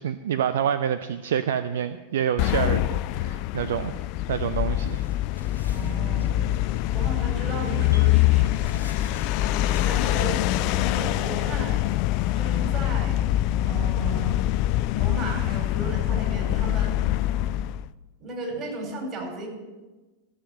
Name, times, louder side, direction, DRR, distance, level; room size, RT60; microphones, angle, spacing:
voice 1, 0.0-3.9 4.3-5.1, right 9 dB, 60° right, 11 dB, 0.4 m, -27 dB
sound 1, 2.4-17.9, left 14 dB, 45° left, 0.3 m, -24 dB
sound 2, 4.9-10.1, equal, 85° left, 1.1 m, -46 dB
voice 2, 5.7-6.3 6.9-8.8 9.8-10.4 10.7-11.8 12.3-13.3 13.7-14.4 14.9-17.1 18.2-19.5, right 2 dB, 30° right, 0 dB, 4.6 m, -35 dB
14.0 x 7.4 x 7.7 m, 1.2 s
figure-of-eight pair, 90°, 0 cm